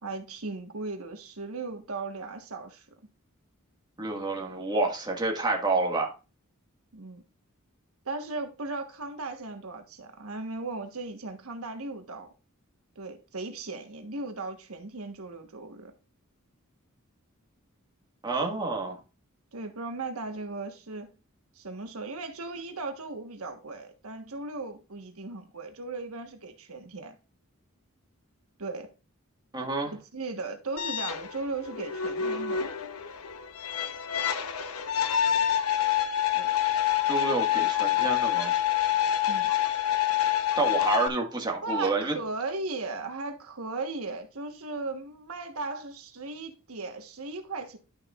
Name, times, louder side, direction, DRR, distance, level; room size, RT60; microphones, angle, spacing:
voice 1, 0.0-2.9 6.9-7.2 8.0-12.3 12.9-15.9 19.5-21.1 21.5-27.2 28.6-28.9 29.9-32.7 36.3-36.5 39.3-39.5 41.6-47.8, right 3 dB, 90° right, 1.3 m, -37 dB
voice 2, 4.0-6.1 18.2-19.0 29.5-29.9 37.1-38.5 40.5-42.1, right 3 dB, 20° right, 1.7 m, -28 dB
sound 1, 30.8-41.1, left 10 dB, 80° left, 0.9 m, -27 dB
11.0 x 6.5 x 2.4 m
head